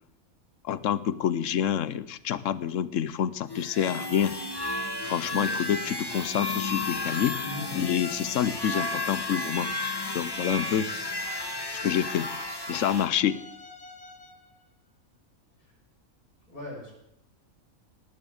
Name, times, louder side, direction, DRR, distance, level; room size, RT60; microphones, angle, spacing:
voice 1, 0.6-4.4 5.0-7.4 7.7-9.7 10.1-10.9 11.8-12.3 12.7-13.4, left 9 dB, 65° left, 16 dB, 1.0 m, -27 dB
sound 1, 3.5-13.1, left 2 dB, 20° left, 1.2 m, -33 dB
voice 2, 7.4-7.8 15.6-15.7 16.5-16.9, left 2 dB, 85° left, -3 dB, 6.8 m, -39 dB
sound 2, 10.8-14.6, left 3 dB, 50° left, 1.7 m, -49 dB
18.5 x 7.2 x 8.0 m, 0.82 s
omnidirectional pair, 1.5 m